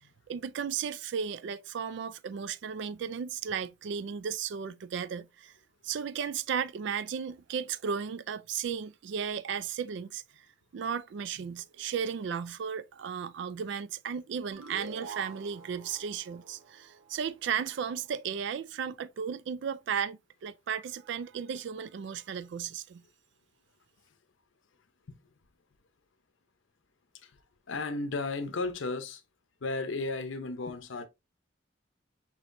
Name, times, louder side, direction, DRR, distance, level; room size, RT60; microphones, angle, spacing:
voice 1, 0.3-5.5 5.8-10.5 10.7-23.0, right 7 dB, 65° right, 0.3 m, -35 dB
sound 1, 14.5-17.7, right 4 dB, 90° right, 0.7 m, -46 dB
voice 2, 27.7-29.2 29.6-31.1, left 3 dB, 75° left, 0.7 m, -34 dB
6.2 x 2.9 x 2.5 m
head